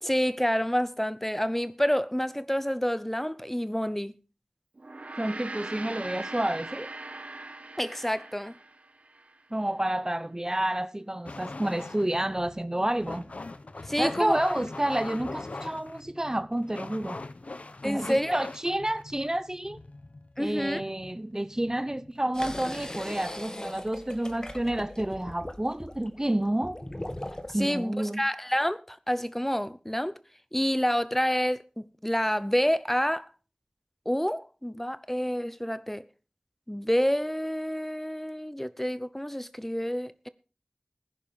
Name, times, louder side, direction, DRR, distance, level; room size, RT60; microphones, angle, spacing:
voice 1, 0.0-4.2 7.8-8.5 13.9-14.4 17.8-18.3 20.4-20.8 27.6-30.1 30.5-33.3 34.1-36.0 36.7-40.3, equal, 10° left, 0.8 m, -28 dB
Gong, 4.8-9.4, right 2 dB, 75° right, 1.1 m, -41 dB
voice 2, 5.2-6.9 9.5-13.3 14.0-17.2 17.8-19.8 20.4-26.8 27.5-28.2, right 1 dB, 25° right, 0.8 m, -29 dB
sound 1, 11.3-22.3, left 2 dB, 90° left, 1.0 m, -42 dB
sound 2, 22.3-27.7, left 1 dB, 30° left, 1.7 m, -39 dB
15.0 x 10.5 x 5.3 m
wide cardioid pair, 50°, 2 cm